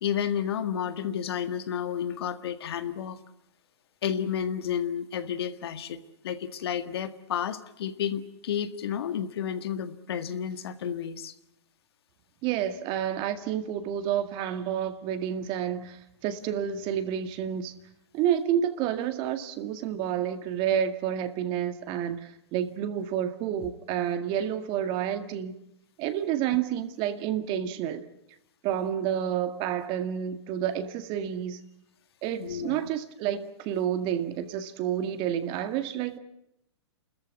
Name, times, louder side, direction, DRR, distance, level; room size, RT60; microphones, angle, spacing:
voice 1, 0.0-3.2 4.0-11.3 32.4-32.9, left 8 dB, 65° left, 10 dB, 1.8 m, -31 dB
voice 2, 12.4-17.7 18.1-25.6 26.0-28.1 28.6-31.6 32.2-36.2, right 9 dB, 35° right, 9 dB, 2.0 m, -29 dB
29.5 x 14.0 x 9.7 m, 0.80 s
hypercardioid pair, 120°, 14 cm